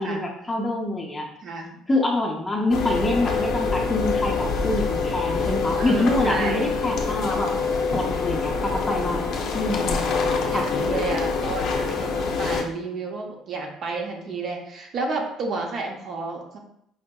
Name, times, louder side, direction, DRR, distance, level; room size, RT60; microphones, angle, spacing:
voice 1, 0.0-1.3 1.9-7.5 7.9-9.2 9.5-10.0 10.5-10.7, left 2 dB, 15° left, 0 dB, 0.6 m, -25 dB
voice 2, 1.4-1.8 5.8-6.6 9.6-9.8 10.5-16.6, right 3 dB, 50° right, 1 dB, 0.6 m, -31 dB
sound 1, 2.7-12.6, left 4 dB, 60° left, 0.5 m, -25 dB
4.7 x 2.6 x 2.2 m, 0.75 s
cardioid pair, 120°, 0 cm